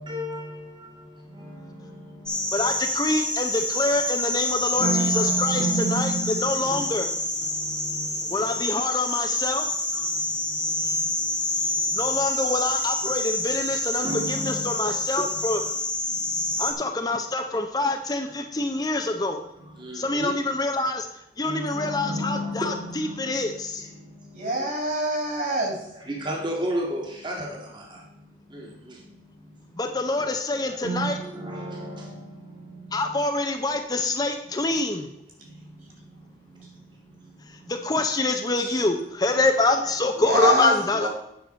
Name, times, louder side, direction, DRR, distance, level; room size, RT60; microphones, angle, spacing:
voice 1, 0.0-2.7 4.7-7.0 7.4-8.5 9.9-12.0 14.0-15.7 16.1-16.5 18.9-19.0 19.6-20.3 21.4-24.7 25.8-29.8 30.2-30.3 30.7-33.0 34.7-34.8 35.4-37.7, right 2 dB, 25° right, 1.7 m, -34 dB
sound 1, 2.3-16.7, left 2 dB, 5° left, 1.2 m, -27 dB
voice 2, 2.5-6.1 6.4-7.1 8.3-9.7 11.9-15.6 16.6-19.4 19.9-21.1 21.4-23.9 29.8-31.2 32.9-35.1 37.5-41.1, left 2 dB, 20° left, 0.6 m, -26 dB
voice 3, 24.3-25.8 40.2-40.7 41.0-41.1, right 2 dB, 50° right, 3.1 m, -25 dB
9.2 x 6.1 x 5.2 m
head